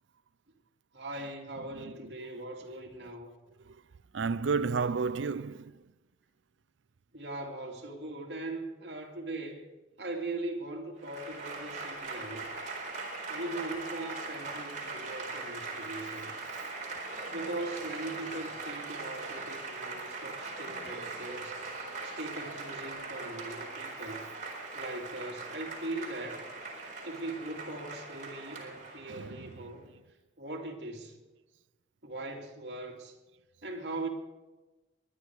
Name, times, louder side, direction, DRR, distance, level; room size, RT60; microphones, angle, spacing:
voice 1, 0.9-3.3 7.1-9.7 10.0-12.5 13.3-16.3 17.3-21.6 22.0-24.3 24.7-26.5 27.0-29.9 30.4-31.2 32.0-33.1 33.6-34.1, right 2 dB, 65° right, 2.7 m, -40 dB
voice 2, 4.1-5.7 29.1-29.5, right 5 dB, 90° right, 0.5 m, -31 dB
Applause / Crowd, 11.0-29.5, right 3 dB, 45° right, 4.1 m, -40 dB
23.0 x 10.5 x 4.8 m
head